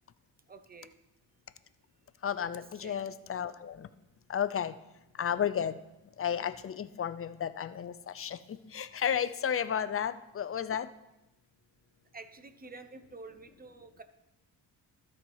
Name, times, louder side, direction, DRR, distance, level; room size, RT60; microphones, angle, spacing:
voice 1, 0.5-0.9 2.4-2.9 12.1-14.0, right 3 dB, 20° right, 10 dB, 0.8 m, -49 dB
voice 2, 2.2-3.7 4.3-4.7 5.2-5.7 6.2-8.4 8.7-10.9, left 8 dB, 35° left, 13 dB, 0.5 m, -32 dB
12.5 x 4.6 x 5.6 m, 0.94 s
cardioid pair, 80°, 42 cm